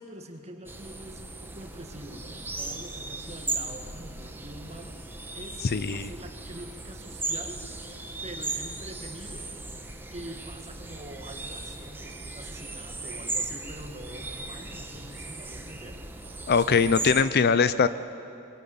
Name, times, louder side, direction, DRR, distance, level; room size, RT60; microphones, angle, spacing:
voice 1, 0.0-5.0 5.3-7.7 8.2-9.5 10.1-16.0 16.5-17.4, right 1 dB, 30° right, 4 dB, 2.0 m, -44 dB
sound 1, 0.7-17.2, right 2 dB, 10° right, 1.4 m, -37 dB
voice 2, 5.7-6.1 16.5-17.9, left 5 dB, 50° left, 14 dB, 0.5 m, -21 dB
24.0 x 21.5 x 8.7 m, 2.8 s
head